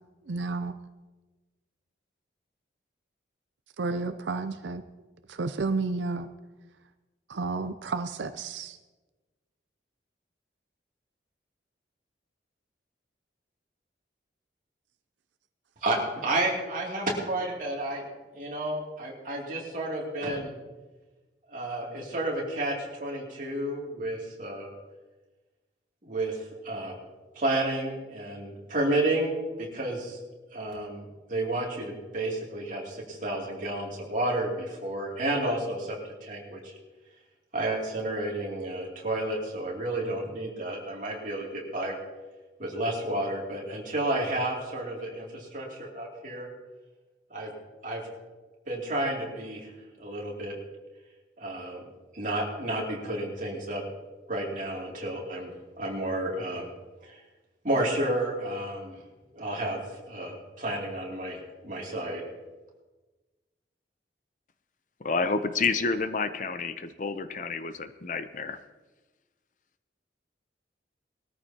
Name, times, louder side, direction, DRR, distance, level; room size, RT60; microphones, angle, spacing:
voice 1, 0.3-0.7 3.8-4.8 5.3-6.3 7.3-8.8, right 3 dB, 85° right, 10 dB, 0.6 m, -31 dB
voice 2, 15.8-18.1 18.3-20.6 21.5-22.7 23.0-24.7 26.0-26.4 26.6-26.9 27.3-30.2 30.5-31.0 31.3-36.7 37.5-42.0 42.6-46.5 47.3-47.5 47.8-48.0 48.7-49.7 50.0-50.5 51.4-51.8 52.1-53.8 54.3-55.5 55.8-56.7 57.0-57.2 57.6-59.0 59.3-61.4 61.6-62.2, right 1 dB, 45° right, -2 dB, 2.8 m, -31 dB
voice 3, 65.0-68.6, left 4 dB, 45° left, 10 dB, 0.6 m, -29 dB
20.0 x 13.5 x 2.9 m, 1.2 s
head